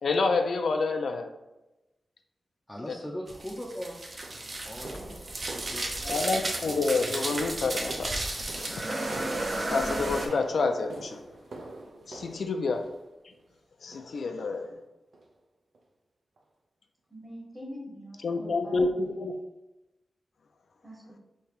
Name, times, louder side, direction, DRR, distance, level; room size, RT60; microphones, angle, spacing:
voice 1, 0.0-1.3 6.0-9.4 9.7-11.2 12.1-12.9 13.8-14.8 18.2-19.3, left 3 dB, 85° left, 0.4 m, -29 dB
voice 2, 2.7-4.0 4.6-5.2 5.5-6.2, equal, 10° left, 0.5 m, -39 dB
sound 1, 3.3-10.3, right 2 dB, 40° right, 0.6 m, -33 dB
sound 2, 3.5-3.7 4.2-13.4 13.9-14.3 14.5-14.7 15.1-15.3 15.7-15.8 16.4-16.5, right 2 dB, 90° right, 0.5 m, -45 dB
voice 3, 17.1-19.0 20.8-21.2, equal, 15° right, 1.0 m, -44 dB
3.2 x 2.8 x 4.6 m
wide cardioid pair, 155°, 0 cm